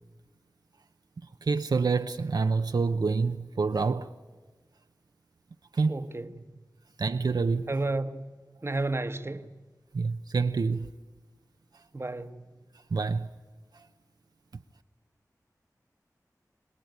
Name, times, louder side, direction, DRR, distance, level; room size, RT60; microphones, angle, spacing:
voice 1, 1.4-4.1 5.7-5.9 7.0-7.7 9.9-10.9 12.9-13.3, right 4 dB, 80° right, 0.7 m, -27 dB
voice 2, 5.9-6.5 7.7-8.3 8.6-9.5 11.9-12.6, right 2 dB, 40° right, 1.1 m, -32 dB
26.0 x 18.0 x 9.4 m
wide cardioid pair, 50°, 7 cm